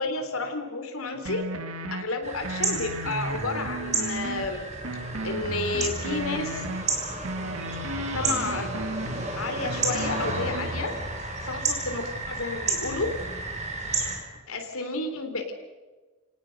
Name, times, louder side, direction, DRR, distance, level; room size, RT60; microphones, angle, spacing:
voice 1, 0.0-1.4 1.9-4.6 5.2-6.6 8.1-8.7 9.4-10.9 11.4-13.1 14.5-15.5, left 3 dB, 80° left, 5 dB, 3.4 m, -31 dB
sound 1, 1.2-2.0 2.4-4.4 4.8-6.8 7.2-9.2 9.6-10.8, right 2 dB, 80° right, 1.8 m, -34 dB
sound 2, 2.2-14.2, right 3 dB, 35° right, 5.0 m, -32 dB
29.0 x 18.5 x 6.5 m, 1.3 s
head